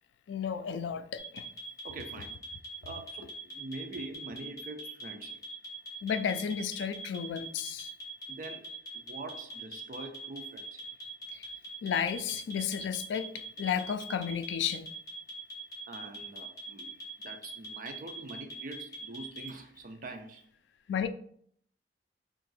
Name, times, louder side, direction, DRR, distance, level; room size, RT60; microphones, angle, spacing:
voice 1, 0.3-1.5 6.0-7.9 11.3-11.5 11.8-13.3 13.6-14.9 20.9-21.1, left 7 dB, 80° left, 0.3 m, -32 dB
sound 1, 1.2-19.5, left 1 dB, 20° left, 1.1 m, -43 dB
voice 2, 1.8-2.4 2.8-5.4 8.3-10.9 15.9-16.9 17.2-20.5, right 2 dB, 50° right, 0.4 m, -44 dB
2.8 x 2.5 x 3.9 m
head